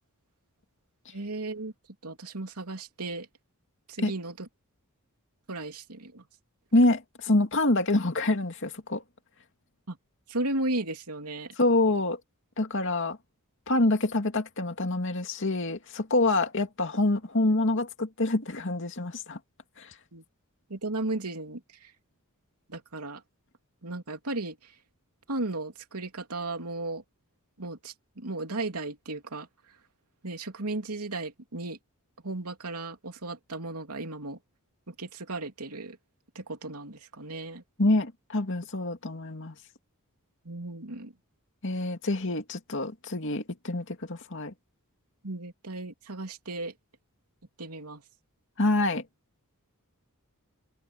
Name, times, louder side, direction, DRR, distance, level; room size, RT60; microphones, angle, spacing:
voice 1, 1.1-1.7 2.0-3.3 3.9-4.5 5.5-6.2 9.9-10.0 10.3-11.5 20.1-20.2 20.7-21.9 22.7-23.2 23.8-24.7 25.3-27.0 27.6-29.5 30.2-31.8 32.2-34.4 34.9-36.0 36.3-37.6 40.4-41.1 45.2-46.7 47.6-48.0, right 2 dB, 85° right, 3.2 m, -35 dB
voice 2, 6.7-9.0 11.6-12.2 12.6-13.2 13.7-19.4 19.8-19.9 37.8-39.5 41.6-44.5 48.6-49.0, left 2 dB, 55° left, 2.4 m, -26 dB
head